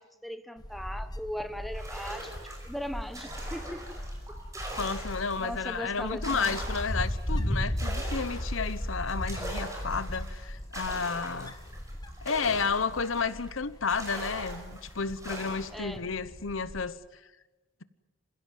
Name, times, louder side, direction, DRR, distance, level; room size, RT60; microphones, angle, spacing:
voice 1, 0.0-2.4 2.6-3.8 4.3-4.4 5.4-6.6 15.7-16.0, equal, ahead, 1.1 m, -38 dB
Wind, 0.6-16.9, equal, 20° left, 1.1 m, -37 dB
sound 1, 1.7-5.6 6.0-13.5 13.9-15.8, right 1 dB, 15° right, 5.4 m, -42 dB
voice 2, 4.8-11.5 12.2-17.0, left 5 dB, 80° left, 1.0 m, -32 dB
27.0 x 16.0 x 9.4 m
head